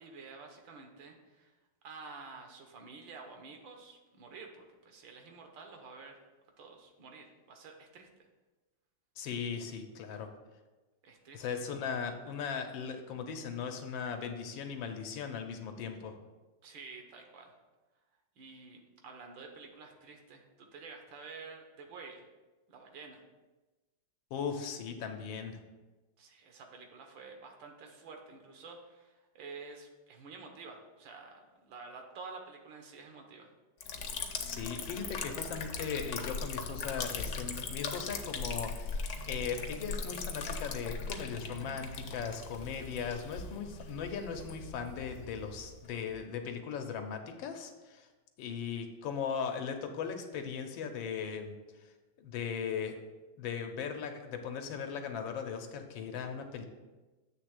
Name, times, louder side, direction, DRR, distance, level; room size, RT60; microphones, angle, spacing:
voice 1, 0.0-1.5 1.8-6.2 6.6-8.1 11.0-11.4 16.6-17.5 18.4-22.2 22.7-23.2 26.2-33.5, right 4 dB, 80° right, 3 dB, 1.8 m, -50 dB
voice 2, 9.2-10.3 11.3-16.2 24.3-25.6 34.4-48.1 48.4-51.5 52.2-53.0 53.4-56.6, left 6 dB, 85° left, 5 dB, 1.6 m, -38 dB
Liquid, 33.8-46.3, left 4 dB, 65° left, 1.2 m, -39 dB
7.9 x 3.4 x 6.5 m, 1.2 s
omnidirectional pair, 2.0 m